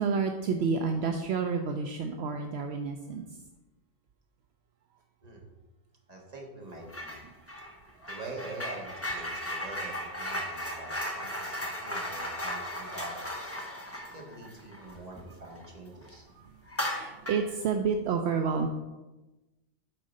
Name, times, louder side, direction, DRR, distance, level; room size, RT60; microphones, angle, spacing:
voice 1, 0.0-3.3 8.0-8.1 9.2-9.3 14.9-15.0 16.4-18.7, right 5 dB, 70° right, 5 dB, 0.8 m, -30 dB
voice 2, 6.1-7.2 8.1-13.5 14.1-16.3, right 2 dB, 35° right, -1 dB, 1.4 m, -44 dB
sound 1, 6.9-7.2 7.5-15.7 16.0-16.1 16.7-17.5, equal, 15° left, 1.0 m, -36 dB
8.8 x 3.8 x 5.3 m, 1.1 s
omnidirectional pair, 1.2 m